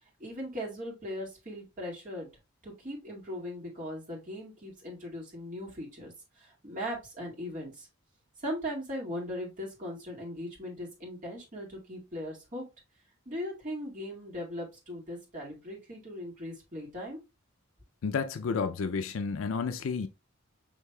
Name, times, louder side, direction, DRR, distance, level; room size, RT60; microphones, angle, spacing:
voice 1, 0.2-2.3 2.6-7.9 8.4-12.6 13.3-17.2, equal, 40° right, 1.9 m, -39 dB
voice 2, 18.0-20.1, left 5 dB, 70° left, 0.4 m, -31 dB
6.3 x 3.2 x 2.2 m
head